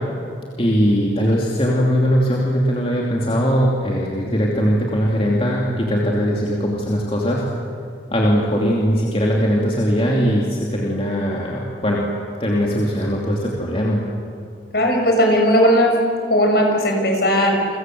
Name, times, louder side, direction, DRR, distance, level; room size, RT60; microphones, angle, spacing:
voice 1, 0.6-7.5 8.1-12.0 12.4-14.0, equal, 30° left, -3 dB, 2.9 m, -20 dB
voice 2, 14.7-15.9 16.3-17.8, equal, 55° left, 2 dB, 6.6 m, -17 dB
30.0 x 24.0 x 7.9 m, 2.4 s
head